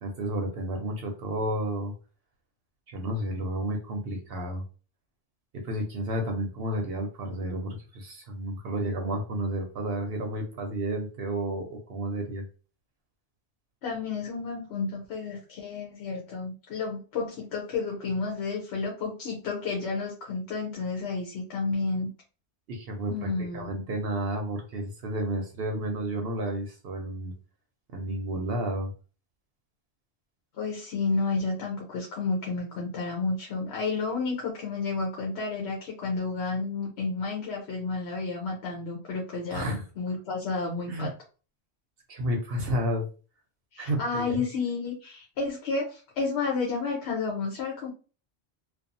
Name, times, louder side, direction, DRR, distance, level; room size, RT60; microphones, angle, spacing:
voice 1, 0.0-1.9 2.9-4.6 5.5-12.4 22.7-27.3 27.9-28.9 39.5-39.8 40.9-41.1 42.1-43.1 43.8-44.4, right 1 dB, 70° right, 2 dB, 0.8 m, -31 dB
voice 2, 13.8-22.1 23.1-23.7 30.6-41.1 43.7-47.9, left 4 dB, 85° left, -1 dB, 1.0 m, -31 dB
2.6 x 2.3 x 2.5 m, 0.35 s
omnidirectional pair, 1.1 m